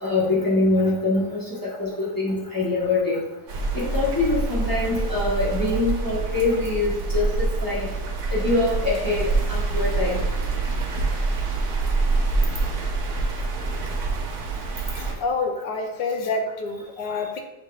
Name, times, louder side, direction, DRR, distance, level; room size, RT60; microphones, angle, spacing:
voice 1, 0.0-3.2 3.7-7.9 8.3-10.2, left 2 dB, 35° left, -7 dB, 0.3 m, -24 dB
sound 1, 3.5-15.1, right 3 dB, 65° right, 1.2 m, -26 dB
voice 2, 14.9-17.4, left 3 dB, 85° left, 4 dB, 1.3 m, -28 dB
7.1 x 3.4 x 2.2 m, 1.0 s
omnidirectional pair, 1.9 m